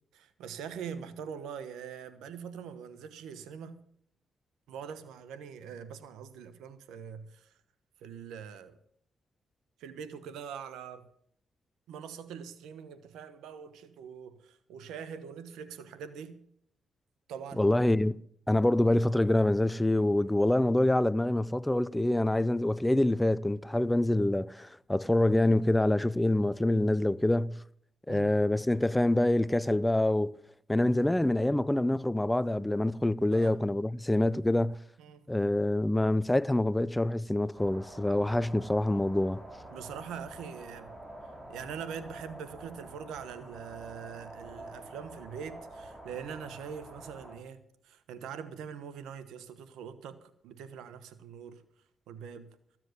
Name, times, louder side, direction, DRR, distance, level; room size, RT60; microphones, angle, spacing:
voice 1, 0.1-3.8 4.7-7.5 8.0-8.8 9.8-11.1 11.9-16.4 17.3-17.8 28.1-28.4 33.3-33.6 35.0-35.3 39.7-40.9 41.5-51.6 52.1-52.5, right 7 dB, 90° right, 1.2 m, -43 dB
voice 2, 17.6-18.1 18.5-27.6 28.1-30.3 30.7-34.8 35.3-39.4, left 1 dB, 10° left, 0.5 m, -26 dB
sound 1, 37.5-47.4, right 1 dB, 25° right, 4.3 m, -47 dB
14.5 x 7.5 x 8.0 m
cardioid pair, 65°, 0 cm